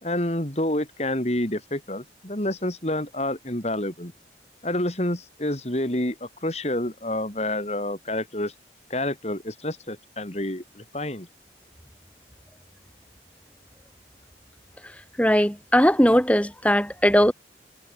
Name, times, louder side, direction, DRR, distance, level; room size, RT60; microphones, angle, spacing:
voice 1, 0.0-4.1 4.6-8.5 8.9-11.3, left 1 dB, 35° left, 3.6 m, -28 dB
voice 2, 15.2-17.3, equal, 10° left, 5.8 m, -19 dB
head